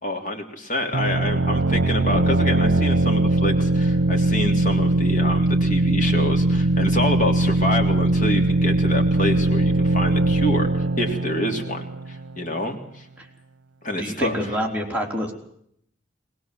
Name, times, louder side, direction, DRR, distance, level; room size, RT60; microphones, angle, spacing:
voice 1, 0.0-13.0 13.8-14.6, left 1 dB, 45° left, 3 dB, 3.4 m, -27 dB
sound 1, 0.9-12.4, right 2 dB, 75° right, 0.9 m, -20 dB
voice 2, 14.0-15.3, equal, 10° right, -1 dB, 3.6 m, -27 dB
21.0 x 21.0 x 7.7 m, 0.69 s
head